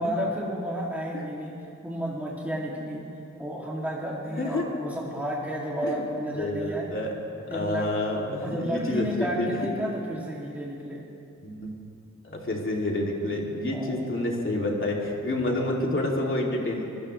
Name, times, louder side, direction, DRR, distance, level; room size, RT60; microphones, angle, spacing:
voice 1, 0.0-1.6 1.8-3.0 3.4-6.9 7.5-11.0 13.7-14.1 15.4-15.7, equal, 5° right, -5 dB, 2.6 m, -32 dB
voice 2, 4.3-4.6 5.8-6.0 6.3-7.1 7.5-9.6 11.4-11.7 12.2-16.9, left 1 dB, 45° left, -2 dB, 2.8 m, -28 dB
25.0 x 17.5 x 3.3 m, 2.7 s
wide cardioid pair, 95°, 29 cm